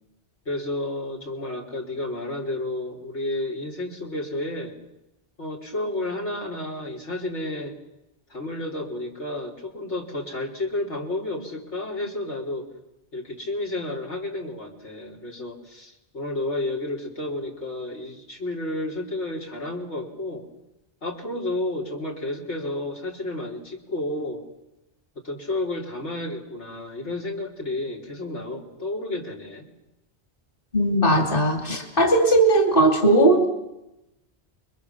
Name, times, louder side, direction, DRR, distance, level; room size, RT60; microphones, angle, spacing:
voice 1, 0.5-4.7 5.4-7.8 8.3-12.7 13.1-20.5 21.0-24.4 25.2-29.7, left 2 dB, 90° left, 0 dB, 4.0 m, -31 dB
voice 2, 30.7-33.5, right 1 dB, 50° left, 4 dB, 3.1 m, -18 dB
29.0 x 23.0 x 7.3 m, 0.91 s
omnidirectional pair, 1.2 m